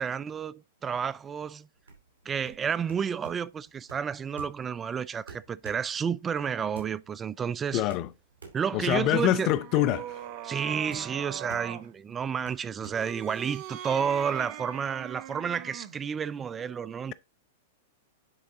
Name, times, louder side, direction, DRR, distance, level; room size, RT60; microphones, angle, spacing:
voice 1, 0.0-1.7 2.3-7.8 8.5-9.5 10.4-17.1, right 7 dB, 20° right, 0.3 m, -31 dB
sound 1, 1.8-13.9, right 5 dB, 80° right, 2.7 m, -50 dB
voice 2, 7.7-8.1 8.7-10.2, left 13 dB, 40° left, 0.6 m, -25 dB
sound 2, 8.9-11.9 12.8-16.0, right 11 dB, 50° right, 0.8 m, -41 dB
9.9 x 3.9 x 3.7 m
hypercardioid pair, 110°, 0 cm